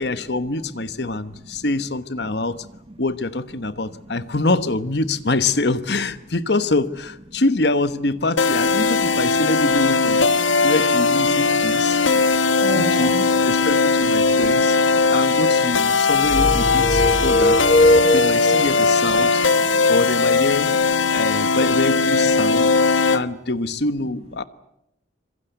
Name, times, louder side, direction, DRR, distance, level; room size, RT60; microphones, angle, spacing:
voice 1, 0.0-2.7 3.0-10.3 10.6-12.0 12.7-13.1 13.4-14.8 15.1-17.6 18.1-19.4 19.9-20.7 21.1-22.7 23.1-24.4, left 2 dB, 60° left, 13 dB, 1.2 m, -24 dB
voice 2, 2.2-2.6 3.9-4.2 9.1-9.2 10.4-10.6 11.8-12.1 12.6-13.3 14.3-14.4 14.9-15.1 15.9-16.1 17.8-18.1 19.6-19.9 20.7-21.2, right 1 dB, 30° right, 13 dB, 1.1 m, -35 dB
sound 1, 8.4-23.2, left 4 dB, 90° left, 1.2 m, -19 dB
sound 2, 16.3-18.7, left 1 dB, 40° left, 2.2 m, -19 dB
26.0 x 23.0 x 8.1 m, 0.85 s
head